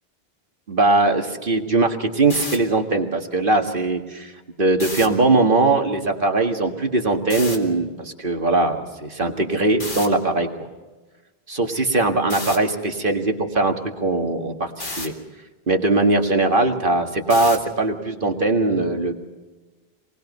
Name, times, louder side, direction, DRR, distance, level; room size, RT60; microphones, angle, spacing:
voice 1, 0.7-4.3 4.6-10.5 11.5-15.1 15.7-19.1, right 2 dB, 55° right, 4 dB, 2.0 m, -20 dB
sound 1, 2.3-2.6 4.7-5.1 7.3-7.6 9.8-10.1 12.3-12.6 14.8-15.1 17.3-17.7, left 2 dB, 55° left, 2.4 m, -30 dB
27.0 x 20.5 x 5.4 m, 1.2 s
omnidirectional pair, 1.0 m